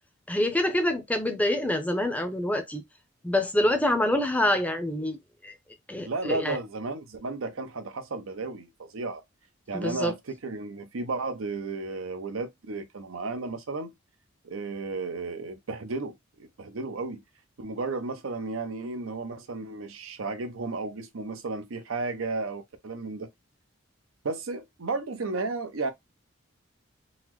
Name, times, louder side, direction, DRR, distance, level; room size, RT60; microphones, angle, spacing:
voice 1, 0.3-2.8 3.2-5.2 5.4-5.5 5.9-6.6 9.7-10.1, left 1 dB, 5° left, 0.5 m, -26 dB
voice 2, 6.0-9.2 9.7-13.9 14.4-17.2 17.6-23.3 24.2-25.9, right 3 dB, 85° right, 0.7 m, -33 dB
4.0 x 2.0 x 3.0 m
head